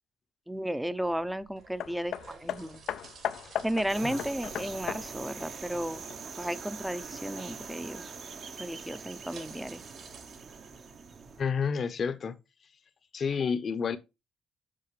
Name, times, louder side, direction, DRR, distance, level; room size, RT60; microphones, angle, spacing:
voice 1, 0.5-2.8 3.6-6.0 6.4-8.1 8.6-9.8, equal, 5° right, 0.6 m, -34 dB
sound 1, 1.0-11.4, right 5 dB, 75° right, 2.8 m, -53 dB
Hammer, 1.8-6.5 7.4-7.5, left 10 dB, 80° left, 0.5 m, -37 dB
sound 2, 3.9-11.4, right 5 dB, 50° right, 0.9 m, -43 dB
voice 2, 11.4-12.3 13.1-14.0, left 6 dB, 50° left, 0.8 m, -30 dB
7.6 x 5.7 x 3.2 m
cardioid pair, 90°, 0 cm